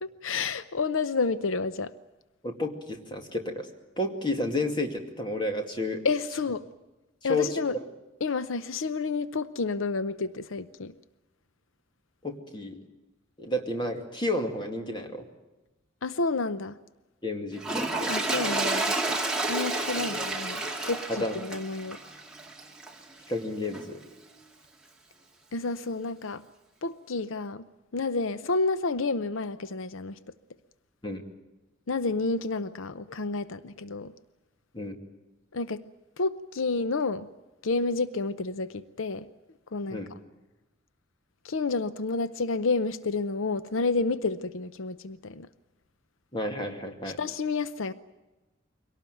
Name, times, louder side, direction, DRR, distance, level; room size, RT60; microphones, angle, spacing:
voice 1, 0.0-1.9 6.0-6.6 7.2-7.8 8.2-10.9 16.0-16.8 18.1-19.2 19.5-22.0 25.5-26.4 26.8-27.7 27.9-30.2 31.9-34.1 35.5-35.8 36.2-37.3 37.6-39.3 39.7-40.0 41.4-45.5 47.2-47.9, left 3 dB, 85° left, 14 dB, 0.7 m, -30 dB
voice 2, 2.4-3.7 4.0-6.0 7.2-7.8 12.2-12.8 13.4-15.2 17.2-18.1 21.1-21.3 23.3-24.0 31.0-31.2 34.7-35.0 39.9-40.1 46.3-47.2, left 1 dB, 25° left, 4 dB, 2.3 m, -31 dB
Toilet flush, 17.6-23.0 23.7-23.8, right 2 dB, 5° right, 2.3 m, -30 dB
23.5 x 18.0 x 9.2 m, 1.1 s
head